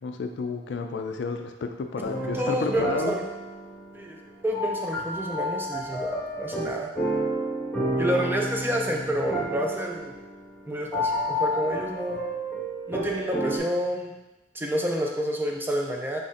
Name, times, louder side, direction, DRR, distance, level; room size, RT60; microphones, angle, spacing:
voice 1, 0.0-3.1, left 4 dB, 70° left, 5 dB, 0.4 m, -31 dB
sound 1, 2.0-13.6, equal, 10° left, 1.1 m, -31 dB
voice 2, 2.3-3.2 3.9-4.2 4.4-6.9 8.0-10.2 10.7-12.2 12.9-14.1 14.5-16.2, equal, 10° right, 0 dB, 0.4 m, -29 dB
4.1 x 3.9 x 2.5 m, 1.0 s
head